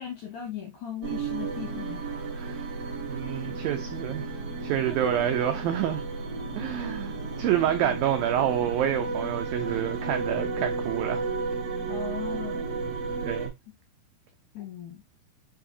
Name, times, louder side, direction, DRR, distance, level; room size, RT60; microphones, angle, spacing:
voice 1, 0.0-2.2 4.8-5.1 7.6-8.0 11.9-12.6 14.5-15.0, left 8 dB, 70° left, 1.9 m, -38 dB
sound 1, 1.0-13.5, right 4 dB, 60° right, 1.6 m, -33 dB
voice 2, 3.1-4.3 4.6-6.0 6.6-11.2 13.2-13.5, right 11 dB, 85° right, 2.0 m, -28 dB
sound 2, 3.3-10.7, left 11 dB, 50° left, 2.3 m, -48 dB
7.6 x 4.8 x 2.8 m
omnidirectional pair, 5.0 m